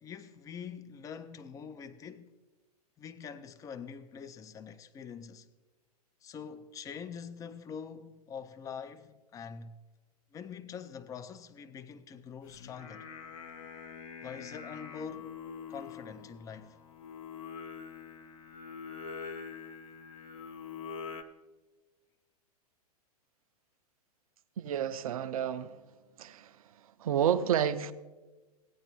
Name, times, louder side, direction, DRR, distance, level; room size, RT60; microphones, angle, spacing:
voice 1, 0.0-2.3 3.0-5.5 6.2-9.8 10.3-13.1 14.2-15.3 15.7-16.8, left 6 dB, 15° left, 0.5 m, -44 dB
Singing, 12.4-21.2, left 6 dB, 55° left, 0.8 m, -45 dB
voice 2, 24.6-25.8 26.2-26.6 27.0-27.9, right 9 dB, 60° right, 0.6 m, -30 dB
16.5 x 9.6 x 3.0 m
figure-of-eight pair, 105°, 20 cm